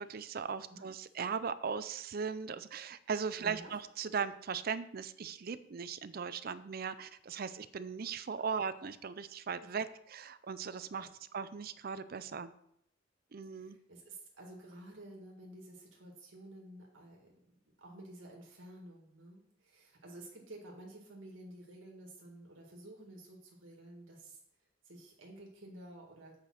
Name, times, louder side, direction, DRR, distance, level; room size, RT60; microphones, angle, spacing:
voice 1, 0.0-11.1 11.3-12.5 13.3-13.8, right 6 dB, 50° right, 13 dB, 0.5 m, -38 dB
voice 2, 3.4-3.7 9.6-9.8 10.9-11.1 13.4-17.4 17.8-24.4 24.8-26.4, right 1 dB, 90° right, -1 dB, 1.8 m, -52 dB
8.1 x 5.1 x 6.3 m, 0.74 s
head